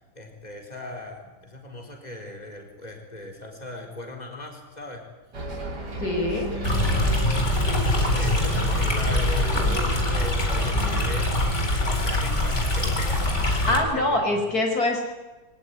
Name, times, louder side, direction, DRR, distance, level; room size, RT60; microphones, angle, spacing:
voice 1, 0.0-5.1 6.5-13.7 13.9-14.4, left 1 dB, 25° left, 2 dB, 4.3 m, -39 dB
Bus, 5.3-11.3, right 2 dB, 75° right, 4.5 m, -32 dB
voice 2, 6.0-6.5 13.7-15.0, left 1 dB, 60° left, 4 dB, 5.5 m, -24 dB
Stream, 6.6-13.8, left 1 dB, 40° left, 4.5 m, -23 dB
24.5 x 18.0 x 9.7 m, 1.1 s
omnidirectional pair, 1.8 m